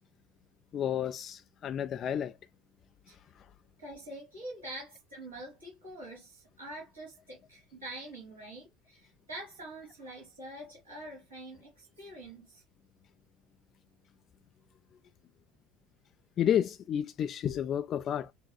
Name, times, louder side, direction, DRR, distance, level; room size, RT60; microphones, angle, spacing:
voice 1, 0.7-2.4 16.4-18.3, left 9 dB, 40° left, 0.3 m, -31 dB
voice 2, 3.8-12.6, right 1 dB, 75° right, 2.7 m, -45 dB
6.8 x 2.5 x 2.2 m
figure-of-eight pair, 65°, 0 cm